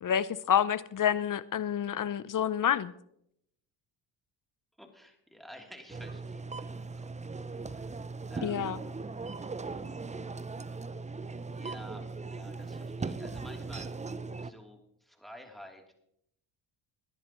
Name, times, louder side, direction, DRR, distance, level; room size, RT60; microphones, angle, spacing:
voice 1, 0.0-2.9 8.4-8.8, left 9 dB, 40° left, 0.7 m, -28 dB
voice 2, 4.8-8.0 8.3-8.6 9.3-10.1 11.5-14.1 14.4-15.8, equal, ahead, 3.2 m, -51 dB
sound 1, 5.9-14.5, right 3 dB, 15° right, 0.5 m, -39 dB
21.0 x 11.0 x 3.1 m
supercardioid pair, 70°, 49 cm